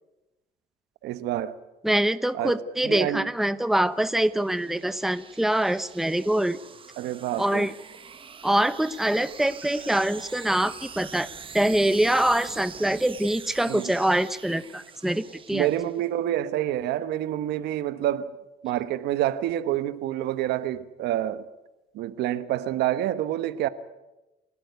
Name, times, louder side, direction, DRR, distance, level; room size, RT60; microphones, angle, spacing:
voice 1, 1.0-1.6 2.3-2.6 2.8-3.3 7.0-7.7 13.7-13.9 15.5-18.3 18.6-21.4 21.9-23.7, right 12 dB, 80° right, 1.2 m, -27 dB
voice 2, 1.8-6.6 7.4-7.7 8.4-11.3 11.5-15.7, right 1 dB, ahead, 0.9 m, -24 dB
sound 1, 2.8-16.3, right 6 dB, 30° right, 1.2 m, -45 dB
29.5 x 13.0 x 9.5 m
cardioid pair, 110°, 17 cm